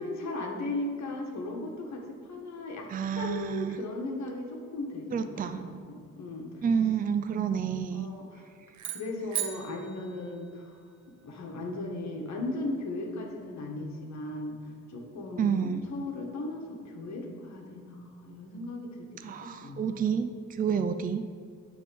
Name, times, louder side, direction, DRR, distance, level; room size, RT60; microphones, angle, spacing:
voice 1, 0.0-6.6 7.9-8.4 8.8-14.6 14.9-19.8, left 2 dB, 65° left, 1 dB, 1.6 m, -37 dB
voice 2, 2.9-3.8 5.1-5.9 6.6-8.1 15.4-15.8 19.2-21.3, right 7 dB, 30° right, 9 dB, 0.4 m, -29 dB
sound 1, 8.7-11.1, right 10 dB, 70° right, 1.0 m, -38 dB
10.5 x 3.7 x 7.0 m, 2.3 s
cardioid pair, 90°, 30 cm